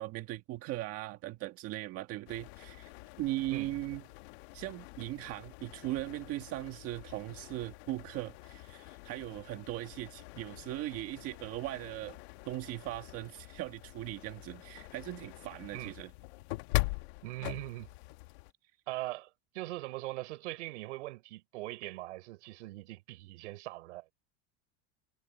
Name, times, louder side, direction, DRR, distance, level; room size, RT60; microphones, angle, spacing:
voice 1, 0.0-2.9 3.2-4.0 4.5-12.2 12.5-16.1, right 16 dB, 40° right, 1.7 m, -39 dB
sound 1, 2.3-18.5, left 22 dB, 65° left, 1.6 m, -43 dB
voice 2, 17.2-17.9 18.9-24.1, right 19 dB, 80° right, 4.8 m, -41 dB
supercardioid pair, 155°, 34 cm